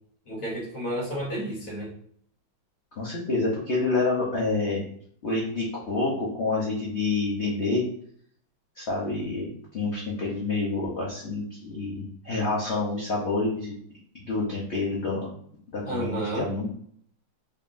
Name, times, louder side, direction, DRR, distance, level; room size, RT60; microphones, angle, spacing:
voice 1, 0.2-1.9 15.8-16.5, right 1 dB, 45° left, -4 dB, 1.3 m, -31 dB
voice 2, 3.0-4.8 5.2-7.8 8.8-13.7 14.1-15.3 15.7-16.7, left 3 dB, 90° left, -5 dB, 0.6 m, -28 dB
3.6 x 3.5 x 2.5 m, 0.63 s
omnidirectional pair, 2.3 m